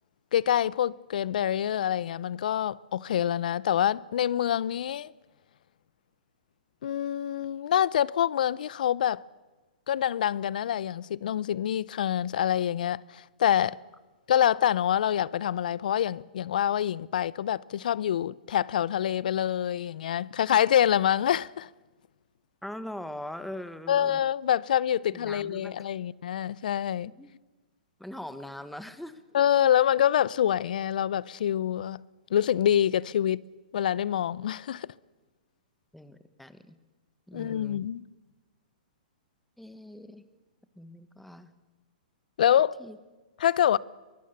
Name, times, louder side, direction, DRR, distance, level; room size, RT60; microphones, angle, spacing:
voice 1, 0.3-5.1 6.8-9.2 9.9-13.8 14.3-21.7 23.9-27.1 29.3-32.1 32.3-33.4 33.7-34.9 37.3-38.0 42.4-42.7 43.4-43.8, left 10 dB, 65° left, 0.6 m, -26 dB
voice 2, 22.6-24.2 25.1-25.9 27.2-27.3 28.0-29.2 35.9-36.8 37.3-37.8 39.6-40.2 40.8-41.5 42.8-43.0, left 1 dB, ahead, 1.4 m, -41 dB
24.0 x 20.0 x 6.8 m
hypercardioid pair, 125°, 5 cm